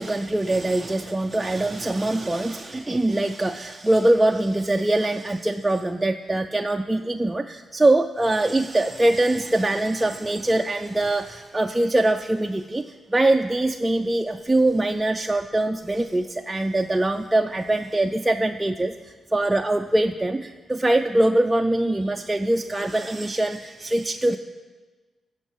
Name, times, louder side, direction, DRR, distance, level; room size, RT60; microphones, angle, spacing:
voice 1, 0.0-24.4, right 1 dB, 10° right, 4 dB, 0.3 m, -23 dB
16.0 x 5.7 x 5.4 m, 1.3 s
wide cardioid pair, 140°, 0 cm